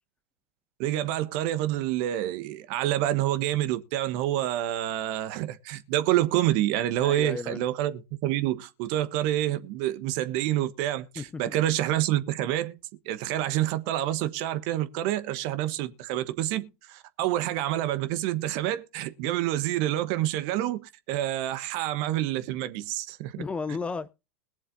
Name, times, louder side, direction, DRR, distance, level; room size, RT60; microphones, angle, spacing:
voice 1, 0.8-12.8 13.0-23.4, right 13 dB, 50° right, 1.2 m, -28 dB
voice 2, 7.0-7.6 11.2-11.6 23.4-24.1, left 4 dB, 15° left, 0.6 m, -33 dB
21.5 x 7.3 x 2.7 m
figure-of-eight pair, 90°, 7 cm